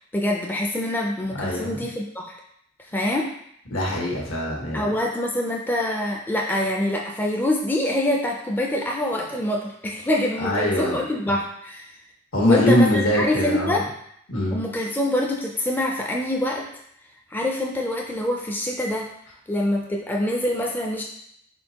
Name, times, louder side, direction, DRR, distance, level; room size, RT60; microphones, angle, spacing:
voice 1, 0.1-2.4 2.9-3.3 4.7-11.9 12.4-13.8 14.5-16.7 17.3-19.1 19.5-21.0, left 1 dB, 10° left, 0 dB, 0.3 m, -25 dB
voice 2, 1.4-1.8 3.7-4.9 10.4-11.0 12.3-13.8 14.3-14.6, left 1 dB, 80° left, -3 dB, 1.4 m, -22 dB
4.3 x 4.0 x 2.8 m, 0.71 s
head